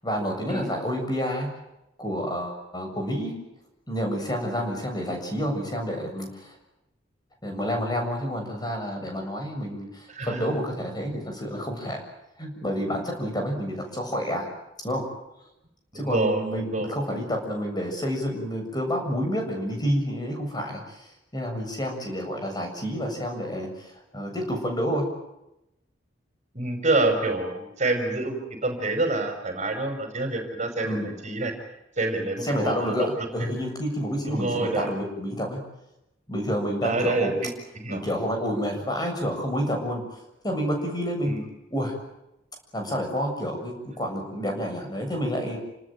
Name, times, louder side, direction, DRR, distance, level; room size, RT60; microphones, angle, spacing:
voice 1, 0.0-1.5 2.0-3.3 3.9-6.6 7.4-12.0 12.4-14.5 14.8-15.0 15.9-21.1 21.3-25.1 30.8-31.1 32.4-33.1 33.3-35.6 36.3-37.3 37.9-40.0 40.4-41.4 41.7-41.9 42.7-45.6, equal, 20° left, 3 dB, 7.2 m, -29 dB
voice 2, 10.1-10.5 15.9-17.0 26.5-31.5 32.0-33.3 34.3-34.9 36.8-38.0 41.2-41.4, right 2 dB, 40° right, 5 dB, 5.6 m, -27 dB
29.5 x 19.0 x 9.2 m, 0.88 s
head